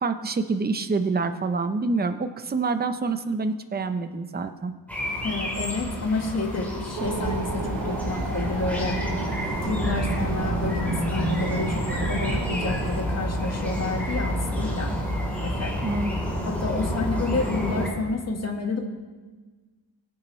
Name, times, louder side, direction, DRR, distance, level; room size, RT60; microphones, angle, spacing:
voice 1, 0.0-4.7 12.0-12.1 15.8-16.1, right 3 dB, 20° right, 8 dB, 0.7 m, -27 dB
sound 1, 4.9-17.9, equal, 5° left, 3.9 m, -29 dB
voice 2, 5.2-9.0 9.6-14.9 15.4-15.8 16.4-18.8, left 3 dB, 35° left, 2 dB, 1.7 m, -29 dB
sound 2, 7.0-13.0, right 4 dB, 50° right, 1.2 m, -31 dB
21.5 x 8.9 x 3.2 m, 1.4 s
wide cardioid pair, 120°, 44 cm